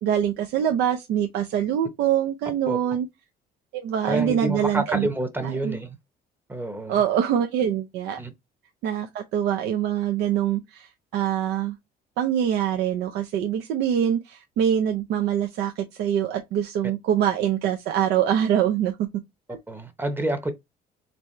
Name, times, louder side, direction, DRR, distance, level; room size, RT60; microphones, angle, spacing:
voice 1, 0.0-3.1 3.7-5.1 5.4-5.8 6.9-8.2 8.8-11.8 12.2-19.1 19.5-19.6, right 9 dB, 80° right, 0.6 m, -24 dB
voice 2, 4.1-6.0 6.5-7.0 8.2-8.3 19.7-20.5, right 1 dB, 10° right, 0.8 m, -28 dB
4.1 x 3.3 x 3.2 m
cardioid pair, 110°, 17 cm